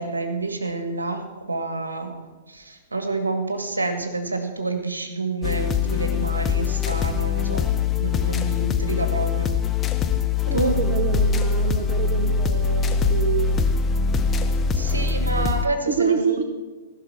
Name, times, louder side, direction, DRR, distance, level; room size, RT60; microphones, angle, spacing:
voice 1, 0.0-2.1 2.5-7.7 7.9-9.6 10.5-10.8 14.7-16.4, right 3 dB, 75° right, 6 dB, 1.6 m, -28 dB
sound 1, 5.4-15.7, left 5 dB, 20° left, 0.7 m, -22 dB
voice 2, 10.5-13.6 14.7-16.4, right 7 dB, 45° right, 5 dB, 0.8 m, -28 dB
15.0 x 6.2 x 5.7 m, 1.3 s
figure-of-eight pair, 110°, 0 cm